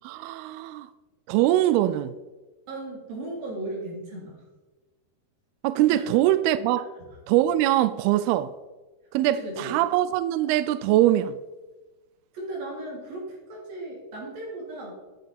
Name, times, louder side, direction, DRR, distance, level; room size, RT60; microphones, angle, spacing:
voice 1, 0.0-0.9 1.3-2.1 5.6-6.9 7.3-8.5 9.1-11.4, right 13 dB, 85° right, 2.5 m, -22 dB
voice 2, 2.7-4.4 5.9-6.1 6.9-7.1 9.2-9.8 12.3-15.0, right 2 dB, 65° right, 4.8 m, -36 dB
12.0 x 11.0 x 4.2 m
omnidirectional pair, 4.6 m